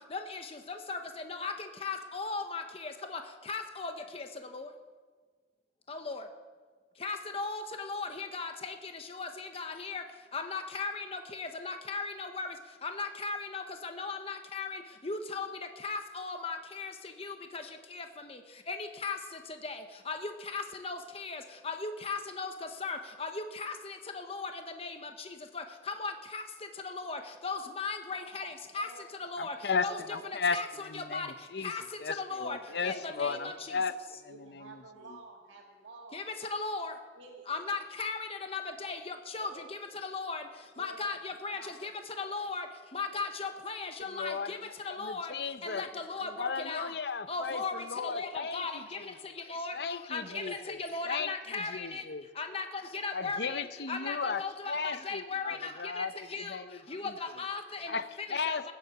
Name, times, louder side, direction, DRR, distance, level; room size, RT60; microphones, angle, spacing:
voice 1, 0.1-1.0 1.2-1.5 1.8-3.2 3.5-4.3 4.5-4.7 5.9-6.3 7.0-10.0 10.3-12.5 12.8-15.5 15.8-16.9 17.2-17.6 17.9-18.4 18.7-19.2 19.6-22.5 22.8-24.5 24.8-25.1 25.5-26.4 26.8-28.9 29.2-29.5 29.8-30.0 30.5-31.3 31.6-31.8 32.2-32.6 32.8-33.5 36.1-36.2 36.5-36.9 37.5-39.5 40.0-40.4 40.8-41.9 42.2-42.7 42.9-44.6 44.8-45.3 45.6-46.9 47.3-49.0 49.5-49.8 50.1-52.0 52.4-53.6 53.9-54.7 55.0-56.1 56.3-56.6 56.9-58.0 58.5-58.7, left 4 dB, 35° left, 6 dB, 0.9 m, -37 dB
voice 2, 28.3-29.0 29.8-30.3 32.7-33.6 34.3-36.3 37.1-37.5 39.4-39.6 40.8-41.1 41.5-41.9 43.1-43.2 45.6-46.4 47.5-47.6 48.0-48.2 50.3-50.7, right 2 dB, 85° right, -2 dB, 2.0 m, -50 dB
voice 3, 29.4-30.6 30.8-31.7 32.0-33.9 34.2-34.8 44.1-45.9 46.4-49.1 49.7-50.8 51.1-52.2 53.1-57.1 57.9-58.7, left 5 dB, 60° left, 13 dB, 0.7 m, -36 dB
15.5 x 9.8 x 7.1 m, 1.5 s
head